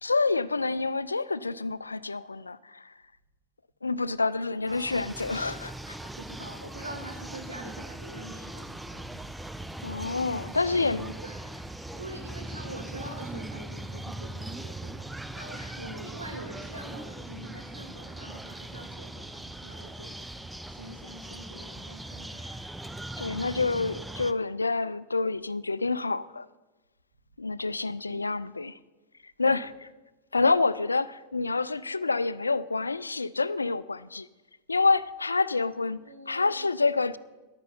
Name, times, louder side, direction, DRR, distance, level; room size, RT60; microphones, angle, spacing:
voice 1, 0.0-2.9 3.8-6.0 9.8-11.1 23.2-26.5 27.4-28.8 29.4-29.7 30.3-34.3 34.7-36.0 36.3-37.2, left 3 dB, 80° left, 18 dB, 0.3 m, -27 dB
voice 2, 4.6-5.0 6.2-9.6 10.3-11.4 11.9-20.4 20.6-22.4 28.0-28.2 29.4-29.7 36.0-36.7, right 1 dB, 85° right, 3 dB, 1.7 m, -45 dB
sound 1, 4.7-24.3, right 1 dB, 5° right, 0.4 m, -40 dB
10.5 x 9.5 x 5.4 m, 1.1 s
figure-of-eight pair, 90°, 0 cm